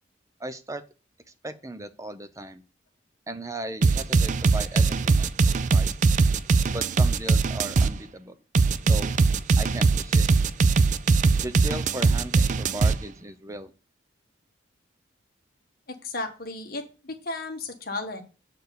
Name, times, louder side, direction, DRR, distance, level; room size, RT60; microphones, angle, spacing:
voice 1, 0.4-0.8 1.4-2.6 3.3-6.0 6.7-8.4 8.9-9.1 9.6-10.4 11.4-13.7, right 1 dB, 15° right, 10 dB, 0.7 m, -37 dB
sound 1, 3.8-7.9 8.5-13.0, right 4 dB, 40° right, 0.3 m, -21 dB
voice 2, 15.9-18.2, left 2 dB, 50° left, 4 dB, 1.6 m, -34 dB
7.8 x 4.7 x 6.8 m, 0.33 s
head